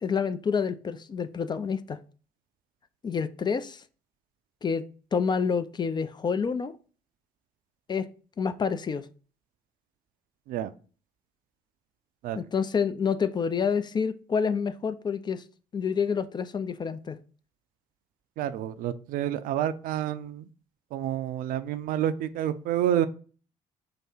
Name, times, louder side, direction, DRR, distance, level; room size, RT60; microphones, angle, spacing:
voice 1, 0.0-2.0 3.0-3.8 4.6-6.7 7.9-8.1 8.4-9.1 12.4-15.4 15.7-17.2, left 6 dB, 25° left, 0.4 m, -28 dB
voice 2, 18.4-20.5 20.9-23.1, right 11 dB, 50° right, 0.4 m, -29 dB
4.6 x 2.5 x 4.4 m
figure-of-eight pair, 45°, 19 cm